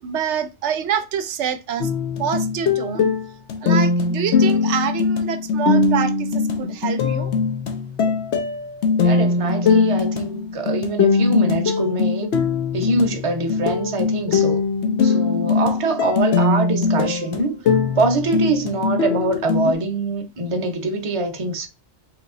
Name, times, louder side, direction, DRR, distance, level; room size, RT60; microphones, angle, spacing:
voice 1, 0.0-1.9 2.2-3.1 3.6-7.3, right 8 dB, 90° right, 0.9 m, -26 dB
sound 1, 1.8-19.7, left 4 dB, 80° left, 1.0 m, -21 dB
voice 2, 9.0-12.4 12.7-14.6 15.0-17.6 17.9-21.7, right 2 dB, 35° right, 0.7 m, -23 dB
4.0 x 2.9 x 3.6 m
omnidirectional pair, 1.1 m